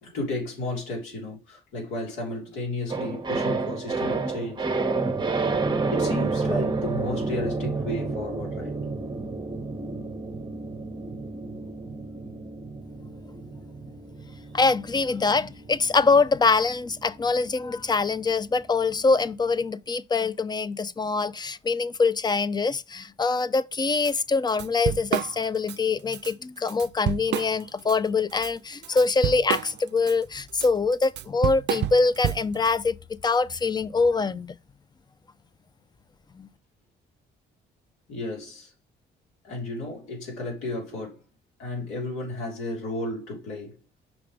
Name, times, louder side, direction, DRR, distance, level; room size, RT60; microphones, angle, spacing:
voice 1, 0.0-4.6 5.9-8.7 38.1-38.7 39.4-41.2 41.6-43.8, left 2 dB, 90° left, 3.4 m, -33 dB
sound 1, 2.9-19.2 19.5-19.6, right 3 dB, 20° right, 0.9 m, -30 dB
voice 2, 14.5-33.0 33.2-34.5 36.4-36.5, left 4 dB, 20° left, 0.5 m, -24 dB
Drum kit / Drum, 24.0-24.1 24.5-25.8 26.1-26.3 26.7-27.9 28.3-32.7, right 12 dB, 60° right, 0.4 m, -29 dB
6.0 x 3.2 x 5.1 m
cardioid pair, 90°, 20 cm